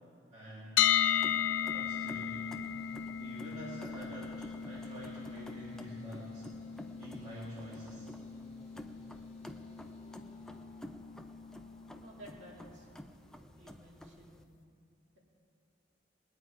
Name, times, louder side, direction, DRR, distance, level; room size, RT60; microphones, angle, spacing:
voice 1, 0.3-0.7 1.7-2.5 3.2-6.4 7.0-8.1, equal, 40° right, -7 dB, 2.1 m, -47 dB
sound 1, 0.8-12.7, left 10 dB, 90° left, 0.4 m, -36 dB
sound 2, 1.0-14.4, equal, 5° left, 0.5 m, -52 dB
sound 3, 1.1-13.0, left 1 dB, 35° left, 1.8 m, -59 dB
voice 2, 11.9-12.9 13.5-14.5, right 1 dB, 85° right, -3 dB, 2.8 m, -54 dB
20.5 x 9.3 x 4.6 m, 2.4 s
head